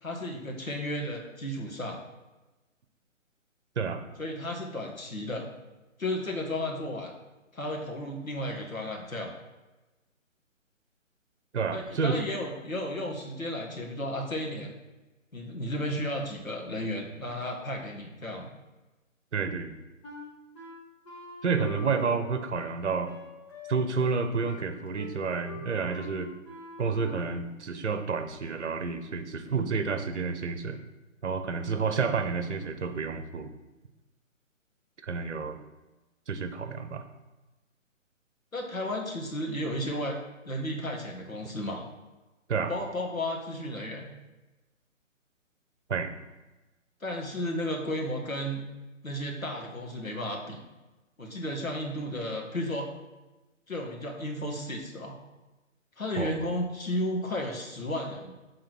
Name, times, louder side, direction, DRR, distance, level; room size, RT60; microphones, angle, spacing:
voice 1, 0.0-2.0 4.2-5.5 6.0-7.1 7.5-9.3 11.7-14.7 15.3-18.5 38.5-40.2 40.4-41.8 42.7-44.1 47.0-48.6 49.0-50.6 51.2-52.9 53.7-55.2 56.0-58.3, left 1 dB, 90° left, 0 dB, 1.8 m, -33 dB
voice 2, 11.5-12.2 19.3-19.8 21.4-23.1 23.7-26.3 26.8-30.8 31.2-33.5 35.0-35.6 36.3-37.0 42.5-42.7 45.9-46.1 56.2-56.5, right 5 dB, 60° right, 8 dB, 1.0 m, -30 dB
Wind instrument woodwind instrument, 20.0-27.5, left 3 dB, 20° left, 1.1 m, -45 dB
8.1 x 3.8 x 4.5 m, 1.1 s
figure-of-eight pair, 140°, 40 cm